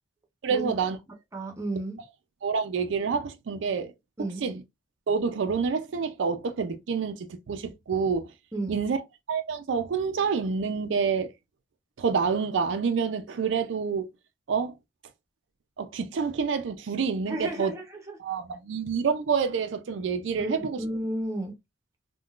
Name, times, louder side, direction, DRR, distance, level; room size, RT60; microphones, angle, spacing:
voice 1, 0.4-1.0 2.4-3.9 4.2-4.6 5.1-8.3 8.7-9.0 9.3-11.3 12.0-14.1 14.5-14.8 15.8-17.7 18.2-20.8, right 5 dB, 80° right, 0.4 m, -28 dB
voice 2, 1.3-2.0 4.2-4.4 8.5-8.8 17.3-18.2 20.4-21.6, right 1 dB, 15° right, 0.7 m, -33 dB
3.7 x 2.2 x 2.3 m
head